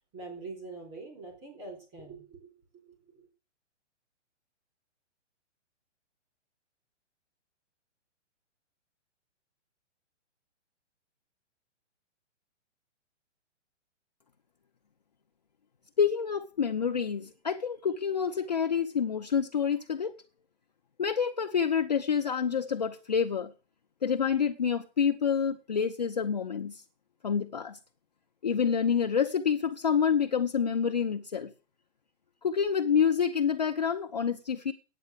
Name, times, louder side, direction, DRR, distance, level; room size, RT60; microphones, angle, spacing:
voice 1, 0.1-3.2, right 3 dB, 20° right, 3.9 m, -45 dB
voice 2, 16.0-20.1 21.0-23.5 24.0-26.8 27.2-27.8 28.4-31.5 32.4-34.7, left 7 dB, 35° left, 0.5 m, -28 dB
9.5 x 8.4 x 7.7 m
hypercardioid pair, 180°, 36 cm